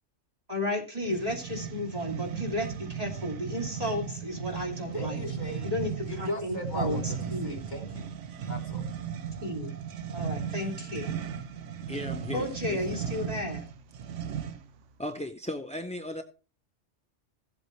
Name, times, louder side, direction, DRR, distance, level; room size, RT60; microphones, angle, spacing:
voice 1, 0.5-5.2 5.6-7.6 9.4-9.7 10.1-11.1 12.3-13.7, left 1 dB, 30° right, -1 dB, 2.8 m, -33 dB
sound 1, 1.0-14.8, right 7 dB, 80° right, 1.1 m, -36 dB
voice 2, 4.9-5.7 6.0-7.2 7.4-8.1 8.5-8.8, left 1 dB, 40° left, 4 dB, 1.4 m, -37 dB
voice 3, 11.9-13.0 15.0-16.2, left 1 dB, 10° left, 6 dB, 0.4 m, -36 dB
15.5 x 8.0 x 3.1 m, 0.35 s
omnidirectional pair, 1.2 m